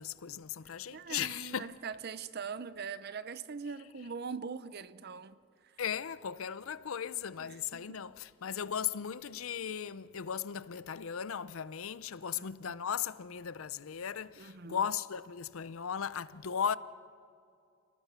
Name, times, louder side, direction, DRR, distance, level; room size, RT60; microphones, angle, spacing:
voice 1, 0.0-1.7 5.8-16.8, left 8 dB, 75° left, 0.6 m, -37 dB
voice 2, 0.9-5.4 5.6-5.8 7.4-8.0 12.3-12.8 14.4-14.8, right 5 dB, 50° right, 0.7 m, -42 dB
28.5 x 18.0 x 5.7 m
head